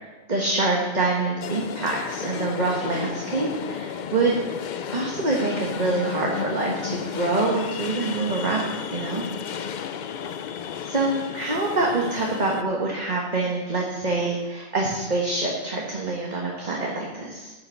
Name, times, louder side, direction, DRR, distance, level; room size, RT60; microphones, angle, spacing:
voice 1, 0.3-4.4 4.9-9.2 10.8-17.5, right 3 dB, 35° right, -2 dB, 1.4 m, -25 dB
sound 1, 1.4-12.6, left 7 dB, 70° left, 0.4 m, -33 dB
10.5 x 6.1 x 6.4 m, 1.2 s
omnidirectional pair, 1.3 m